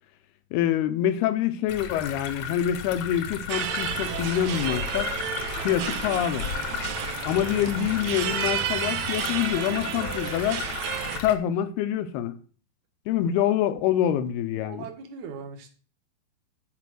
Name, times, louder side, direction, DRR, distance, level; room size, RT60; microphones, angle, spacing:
voice 1, 0.5-5.1 5.6-6.5 7.3-10.6 11.2-12.3 13.1-14.9, left 10 dB, 85° left, 2.9 m, -26 dB
sound 1, 1.7-11.4, left 7 dB, 65° left, 1.7 m, -34 dB
sound 2, 3.5-11.2, right 10 dB, 90° right, 1.5 m, -32 dB
voice 2, 14.7-15.8, right 6 dB, 55° right, 2.6 m, -40 dB
11.0 x 5.2 x 7.8 m
omnidirectional pair, 4.4 m